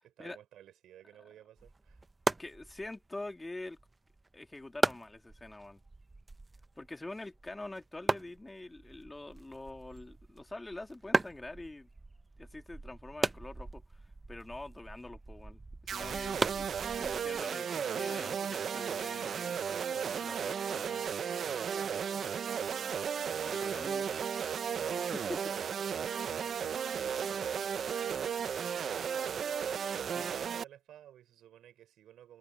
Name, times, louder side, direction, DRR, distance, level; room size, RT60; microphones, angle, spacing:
voice 1, 0.0-2.0 25.9-32.4, right 11 dB, 80° right, 6.1 m, -55 dB
sound 1, 1.6-17.4, right 2 dB, 20° right, 0.9 m, -38 dB
voice 2, 2.4-3.8 4.3-5.8 6.8-11.9 12.4-15.6 15.9-16.7 17.0-19.7 20.0-21.1 23.4-24.1 24.7-25.4 30.2-30.3, left 2 dB, 15° left, 2.9 m, -45 dB
sound 2, 15.9-30.6, right 7 dB, 55° right, 0.7 m, -34 dB
cardioid pair, 85°, 0 cm